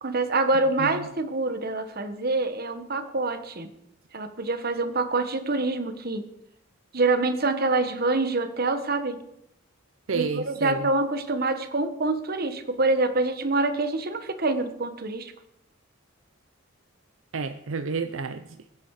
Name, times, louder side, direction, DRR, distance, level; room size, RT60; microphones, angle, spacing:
voice 1, 0.0-3.7 4.1-6.2 6.9-9.2 10.1-15.3, right 2 dB, 45° right, 9 dB, 1.4 m, -26 dB
voice 2, 10.1-10.9 17.3-18.5, right 4 dB, 70° right, 10 dB, 0.7 m, -30 dB
22.5 x 9.7 x 4.9 m, 0.76 s
head